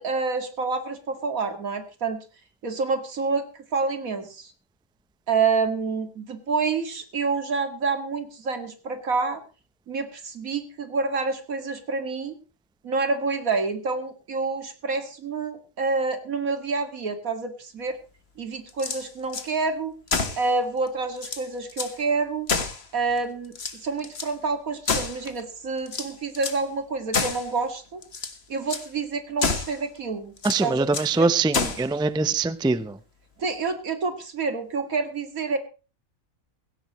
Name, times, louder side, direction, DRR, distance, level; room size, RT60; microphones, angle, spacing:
voice 1, 0.0-2.2 2.6-4.5 5.3-9.4 9.9-12.4 12.8-18.0 18.4-19.9 20.4-22.5 22.9-28.0 28.5-30.3 30.6-30.9 31.1-31.3 33.4-35.6, right 4 dB, 80° right, 2.5 m, -28 dB
sound 1, 18.7-19.5 20.1-20.5 20.9-21.0 21.2-22.0 22.5-23.2 23.5-24.3 24.9-25.4 25.9-26.6 27.1-27.5 28.0-28.4 28.7-28.9 29.4-29.8 30.4-31.1 31.5-31.9, left 4 dB, 50° left, 1.8 m, -28 dB
voice 2, 30.4-33.0, right 3 dB, 5° right, 0.3 m, -23 dB
17.0 x 16.5 x 3.0 m
omnidirectional pair, 1.4 m